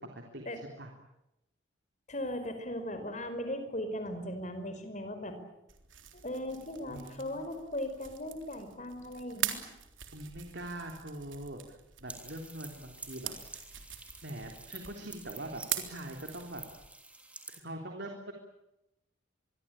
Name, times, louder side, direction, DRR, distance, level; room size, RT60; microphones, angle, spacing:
voice 1, 0.1-0.9 6.9-7.4 10.1-13.3 14.2-16.6 17.5-18.3, right 1 dB, 55° right, 3 dB, 3.6 m, -43 dB
voice 2, 2.1-5.4 6.1-9.6, left 1 dB, 35° left, 9 dB, 5.1 m, -38 dB
sound 1, 5.7-16.9, right 11 dB, 75° right, 3.6 m, -43 dB
sound 2, 12.1-17.6, right 2 dB, 5° right, 3.2 m, -49 dB
26.0 x 23.0 x 8.9 m, 0.88 s
head